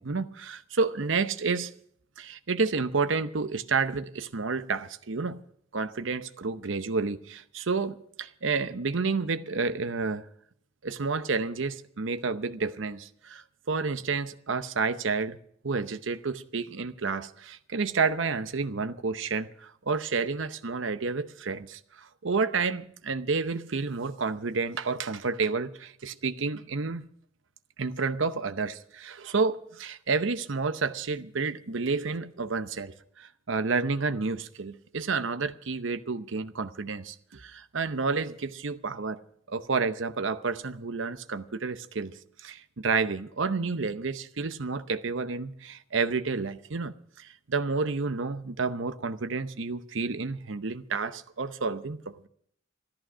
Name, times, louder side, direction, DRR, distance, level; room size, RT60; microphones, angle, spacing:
voice 1, 0.0-1.7 2.2-5.4 5.7-10.3 10.8-15.4 15.6-27.0 27.8-39.2 39.5-52.3, right 4 dB, 70° right, 0.8 m, -30 dB
14.5 x 13.5 x 6.1 m
head